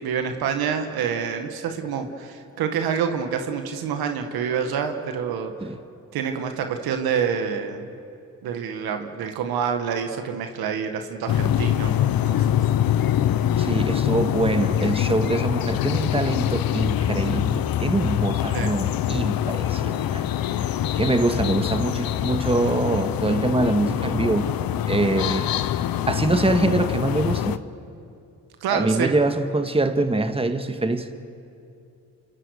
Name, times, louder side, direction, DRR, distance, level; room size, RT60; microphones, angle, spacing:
voice 1, 0.0-5.5 6.1-7.9 8.4-12.5 18.5-18.7 28.6-29.1, right 7 dB, 85° right, 6 dB, 1.8 m, -27 dB
sound 1, 11.3-27.6, left 11 dB, 70° left, 0.9 m, -24 dB
voice 2, 13.6-20.3 20.6-24.5 24.9-25.5 26.1-27.6 28.7-31.1, right 2 dB, 15° right, 7 dB, 1.7 m, -24 dB
27.0 x 26.5 x 6.6 m, 2.6 s
supercardioid pair, 50°, 36 cm